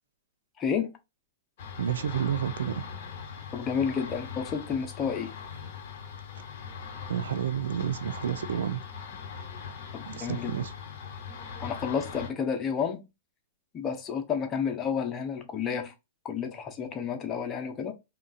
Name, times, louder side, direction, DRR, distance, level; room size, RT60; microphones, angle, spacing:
voice 1, 0.6-1.0 3.5-5.3 9.9-10.6 11.6-13.0 13.7-15.9 16.2-17.9, left 7 dB, 25° left, 0.6 m, -31 dB
sound 1, 1.6-12.3, left 6 dB, 55° left, 0.8 m, -41 dB
voice 2, 1.8-2.8 7.1-8.9 10.1-10.7, right 9 dB, 80° right, 0.3 m, -30 dB
2.8 x 2.3 x 2.5 m
hypercardioid pair, 125°, 0 cm